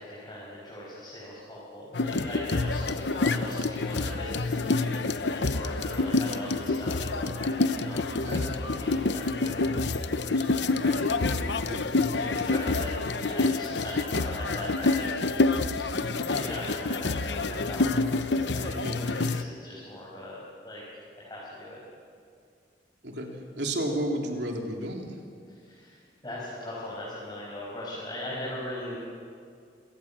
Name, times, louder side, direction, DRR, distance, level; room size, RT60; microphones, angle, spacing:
voice 1, 0.0-15.2 16.1-21.8 25.5-29.0, left 1 dB, 25° left, -7 dB, 6.0 m, -40 dB
sound 1, 1.9-19.4, left 3 dB, 80° left, 0.9 m, -27 dB
voice 2, 11.7-12.1 18.7-19.1 23.0-23.3 23.6-25.2, right 1 dB, 70° right, 2 dB, 3.5 m, -32 dB
27.5 x 18.0 x 7.5 m, 2.3 s
head